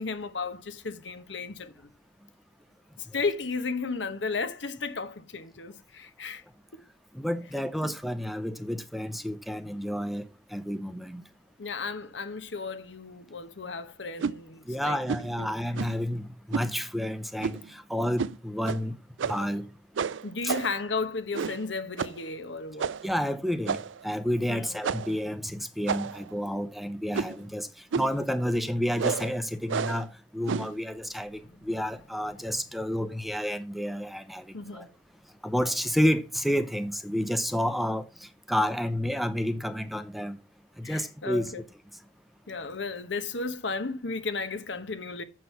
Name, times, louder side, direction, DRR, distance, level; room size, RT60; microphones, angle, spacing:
voice 1, 0.0-1.9 3.0-6.4 7.8-7.9 11.6-15.0 15.4-15.5 20.2-22.9 24.5-24.8 32.4-32.5 34.5-34.9 40.8-41.6 42.5-45.2, left 4 dB, 70° left, 1.1 m, -34 dB
voice 2, 7.1-11.2 14.7-19.0 19.3-19.7 20.4-20.5 23.0-23.8 24.0-27.7 28.0-34.9 35.4-40.4 40.8-41.5, equal, ahead, 0.6 m, -30 dB
sound 1, 14.2-14.4 15.1-15.3 15.7-16.0 16.5-16.7 17.4-17.7 18.2-18.4 18.6-18.8 19.2-19.5 20.0-20.8 21.3-21.7 22.0-22.2 22.8-23.1 23.6-24.0 24.8-25.2 25.9-26.3 27.1-27.4 27.9-28.2 29.0-29.3 29.7-30.1 30.5-30.8, right 6 dB, 85° right, 0.4 m, -31 dB
7.7 x 6.1 x 5.6 m
head